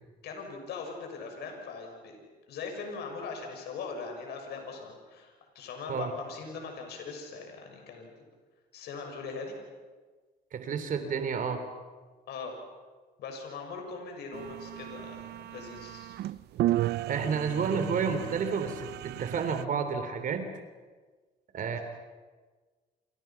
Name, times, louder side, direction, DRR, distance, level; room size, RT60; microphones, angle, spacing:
voice 1, 0.2-2.2 2.5-8.1 8.7-9.6 12.3-12.5 13.2-16.1, left 4 dB, 70° left, 3 dB, 6.5 m, -40 dB
voice 2, 10.5-11.6 17.1-20.5 21.5-21.8, right 6 dB, 50° right, 8 dB, 3.3 m, -30 dB
sound 1, 14.3-19.6, right 15 dB, 75° right, 0.7 m, -34 dB
28.5 x 28.0 x 6.0 m, 1.4 s
cardioid pair, 110°, 17 cm